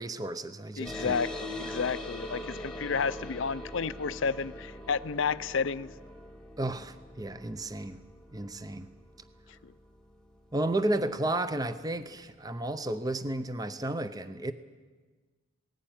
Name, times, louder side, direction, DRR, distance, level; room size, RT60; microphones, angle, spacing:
voice 1, 0.0-1.2 6.6-8.0 8.3-8.9 10.5-14.5, right 1 dB, 20° right, 0.7 m, -32 dB
voice 2, 0.8-5.9 9.6-9.7, left 5 dB, 65° left, 0.6 m, -31 dB
sound 1, 0.8-11.8, left 1 dB, 5° left, 1.3 m, -43 dB
19.0 x 16.5 x 9.1 m
head